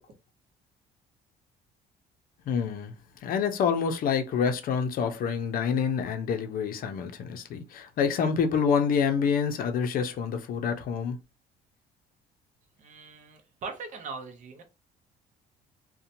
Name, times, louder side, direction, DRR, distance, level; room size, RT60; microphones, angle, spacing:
voice 1, 2.5-2.9 3.2-11.2, left 6 dB, 60° left, 0.5 m, -27 dB
voice 2, 12.8-14.6, right 4 dB, 45° right, 0.7 m, -40 dB
2.8 x 2.1 x 2.6 m
cardioid pair, 110°, 17 cm